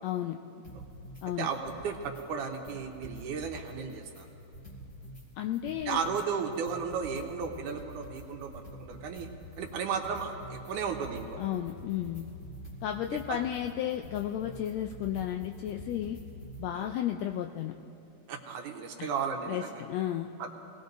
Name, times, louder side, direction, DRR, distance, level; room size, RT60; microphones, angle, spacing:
voice 1, 0.0-0.4 1.2-1.5 5.4-6.0 11.4-12.3 12.8-16.2 16.6-17.7 19.0-19.1 19.5-20.3, left 11 dB, 85° left, 4 dB, 1.5 m, -33 dB
sound 1, 0.6-1.2 1.5-2.2 2.5-5.2 5.5-16.7, equal, 30° left, 2.8 m, -47 dB
voice 2, 1.4-4.3 5.9-9.3 9.6-11.4 13.3-13.4 16.7-16.9 18.3-19.7 20.4-20.5, right 6 dB, 80° right, 3 dB, 2.5 m, -34 dB
26.5 x 19.0 x 2.7 m, 2.8 s
omnidirectional pair, 3.6 m